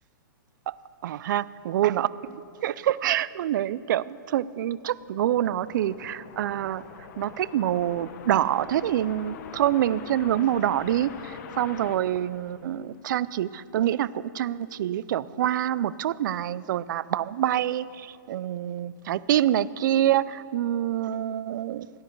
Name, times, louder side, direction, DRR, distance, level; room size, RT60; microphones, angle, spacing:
voice 1, 1.0-6.8 7.2-21.9, right 12 dB, 65° right, 19 dB, 0.4 m, -26 dB
sound 1, 4.7-13.1, left 7 dB, 55° left, 1.0 m, -44 dB
16.0 x 10.5 x 4.6 m, 2.6 s
hypercardioid pair, 145°, 11 cm